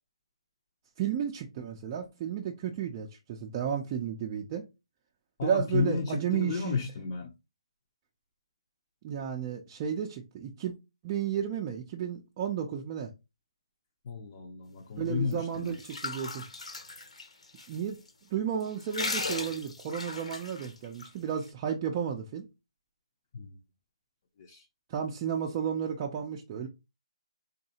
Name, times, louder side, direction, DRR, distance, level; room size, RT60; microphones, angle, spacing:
voice 1, 1.0-4.6 5.4-6.8 9.0-10.7 11.0-13.1 15.0-16.4 17.7-18.0 18.3-22.5 24.9-26.7, right 8 dB, 20° right, 0.4 m, -33 dB
voice 2, 5.4-7.3 14.0-15.7 23.3-23.6 24.4-24.6, left 5 dB, 35° left, 0.5 m, -32 dB
sound 1, 15.3-17.8 18.1-18.2 18.6-21.1, left 3 dB, 85° left, 1.1 m, -37 dB
4.0 x 2.7 x 2.8 m
hypercardioid pair, 165°, 3 cm